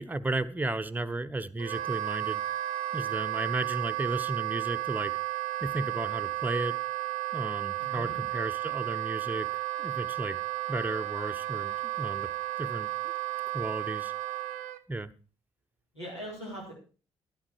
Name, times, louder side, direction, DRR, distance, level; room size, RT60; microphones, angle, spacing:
voice 1, 0.0-2.4 2.9-5.1 5.6-6.7 7.3-10.4 10.7-12.3 12.6-12.9 13.5-14.1 14.9-15.1, right 2 dB, 10° right, 9 dB, 0.9 m, -34 dB
Wind instrument woodwind instrument, 1.6-14.8, right 15 dB, 65° right, 0.6 m, -33 dB
voice 2, 7.8-8.2 15.9-16.7, equal, 85° left, -4 dB, 4.5 m, -41 dB
11.5 x 11.0 x 4.7 m, 0.36 s
figure-of-eight pair, 40°, 14 cm